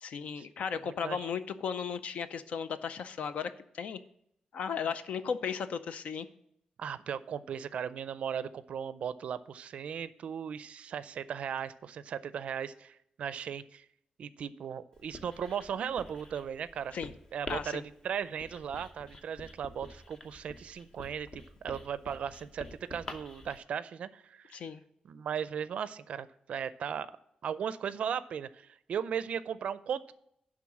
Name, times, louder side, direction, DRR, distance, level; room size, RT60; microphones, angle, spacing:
voice 1, 0.0-4.0 4.5-6.3 16.9-17.1 17.5-17.8 24.5-24.8, left 6 dB, 65° left, 12 dB, 0.5 m, -35 dB
voice 2, 0.8-1.3 6.8-13.9 14.2-17.0 17.3-24.5 25.0-27.1 27.4-30.1, right 8 dB, 60° right, 15 dB, 0.4 m, -37 dB
Writing, 14.9-23.6, left 2 dB, 30° left, 0.8 m, -48 dB
11.0 x 3.7 x 7.2 m, 0.75 s
wide cardioid pair, 180°, 2 cm